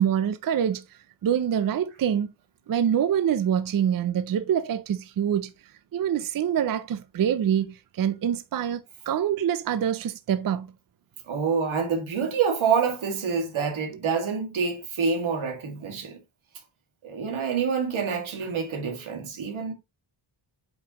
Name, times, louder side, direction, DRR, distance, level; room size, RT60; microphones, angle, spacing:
voice 1, 0.0-2.3 2.7-5.5 5.9-8.8 9.1-10.7, right 9 dB, 50° right, 0.5 m, -25 dB
voice 2, 11.3-16.2 17.0-19.7, right 6 dB, 90° right, 2.1 m, -27 dB
7.9 x 5.2 x 2.9 m
wide cardioid pair, 175°, 46 cm